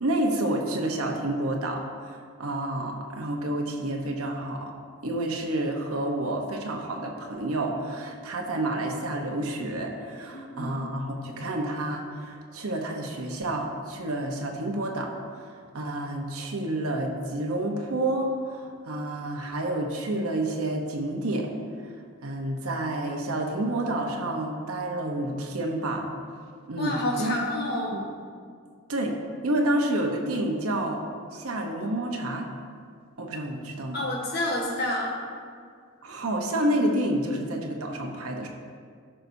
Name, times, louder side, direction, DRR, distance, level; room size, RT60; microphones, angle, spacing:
voice 1, 0.0-4.7 5.0-15.1 15.5-21.5 22.2-26.1 26.7-27.5 27.9-28.0 28.9-29.2 29.4-31.0 31.3-32.5 33.2-34.0 36.0-38.5, right 1 dB, 80° right, 1 dB, 0.9 m, -29 dB
voice 2, 10.3-10.7 26.8-27.9 33.9-35.1, left 1 dB, 45° left, -2 dB, 1.3 m, -29 dB
13.5 x 5.5 x 2.7 m, 2.1 s
head